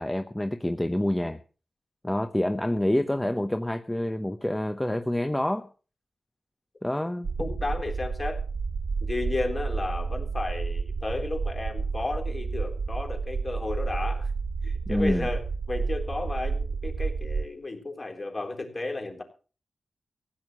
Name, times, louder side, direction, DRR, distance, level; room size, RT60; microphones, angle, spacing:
voice 1, 0.0-1.4 2.0-5.7 6.8-7.3 14.9-15.3, left 1 dB, 10° left, 7 dB, 1.0 m, -27 dB
sound 1, 7.2-17.4, right 4 dB, 80° right, 2.0 m, -30 dB
voice 2, 7.4-8.4 9.0-14.3 14.6-15.4 15.7-19.2, left 2 dB, 35° left, 4 dB, 3.9 m, -33 dB
16.0 x 9.5 x 6.1 m, 0.37 s
wide cardioid pair, 95°, 0 cm